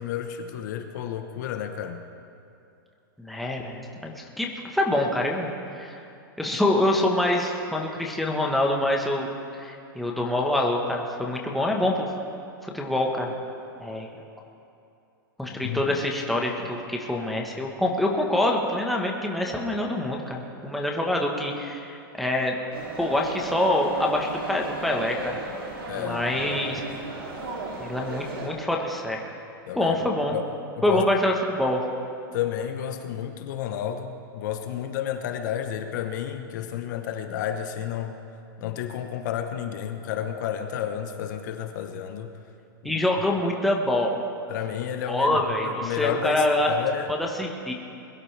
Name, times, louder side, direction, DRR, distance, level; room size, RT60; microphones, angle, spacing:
voice 1, 0.0-2.0 15.5-16.0 25.9-26.6 29.7-30.0 30.3-30.5 30.8-31.1 32.3-38.1 38.6-42.3 42.8-43.0 44.5-45.4 45.6-47.1, left 10 dB, 55° left, 6 dB, 1.1 m, -31 dB
voice 2, 3.2-6.0 6.4-9.3 9.5-12.1 12.6-13.3 13.8-14.1 15.4-22.5 23.0-25.4 25.9-26.8 27.8-29.2 29.7-30.4 30.8-31.8 42.8-44.1 45.1-46.7 47.2-47.7, left 1 dB, ahead, -1 dB, 1.2 m, -25 dB
sound 1, 22.7-28.5, right 2 dB, 90° right, 3.0 m, -35 dB
22.0 x 12.0 x 3.4 m, 2.7 s
supercardioid pair, 155°, 12 cm